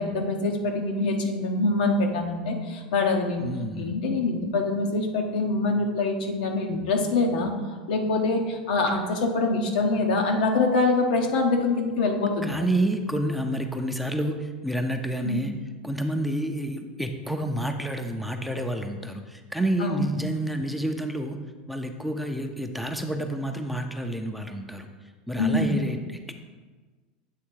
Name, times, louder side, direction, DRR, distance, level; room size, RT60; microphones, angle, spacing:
voice 1, 0.0-3.5 3.8-12.5 15.2-15.4 19.8-20.2 25.4-25.8, left 3 dB, 75° left, 3 dB, 0.9 m, -25 dB
voice 2, 3.4-3.9 12.4-15.5 15.8-21.4 21.7-24.9 25.3-26.3, right 1 dB, ahead, 4 dB, 0.5 m, -29 dB
7.7 x 3.2 x 4.7 m, 1.4 s
hypercardioid pair, 100°, 4 cm